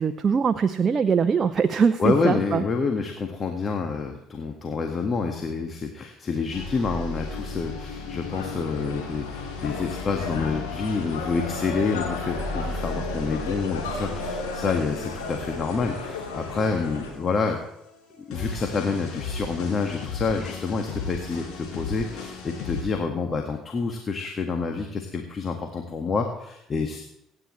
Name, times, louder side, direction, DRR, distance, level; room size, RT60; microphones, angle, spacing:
voice 1, 0.0-2.6, right 6 dB, 40° right, 9 dB, 0.7 m, -22 dB
voice 2, 2.0-17.6 18.3-27.0, left 4 dB, 40° left, 3 dB, 1.8 m, -28 dB
sound 1, 6.5-22.8, left 3 dB, 65° left, 6.2 m, -36 dB
sound 2, 8.3-17.1, left 4 dB, 85° left, 3.6 m, -35 dB
25.5 x 9.9 x 3.2 m, 0.81 s
hypercardioid pair, 55°, 0 cm